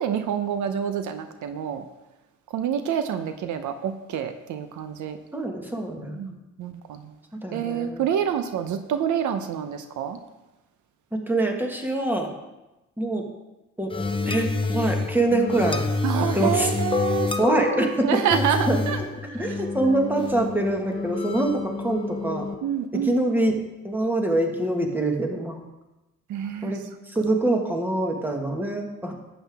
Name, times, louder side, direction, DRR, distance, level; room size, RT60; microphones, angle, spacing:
voice 1, 0.0-1.8 2.5-5.2 6.2-6.3 6.6-7.0 7.5-10.2 16.0-19.0 19.4-19.6 22.6-23.4 26.3-26.8, right 8 dB, 75° right, 9 dB, 0.7 m, -27 dB
voice 2, 5.3-6.4 7.4-8.0 11.1-12.3 13.0-13.3 13.8-13.9 14.2-15.8 16.3-16.7 17.4-18.8 19.4-22.5 22.9-23.6 23.8-25.6 26.6-29.3, right 2 dB, 5° right, 2 dB, 1.6 m, -25 dB
sound 1, 13.9-22.5, left 3 dB, 15° left, 0.8 m, -28 dB
11.0 x 7.9 x 3.5 m, 1.0 s
cardioid pair, 90°, 30 cm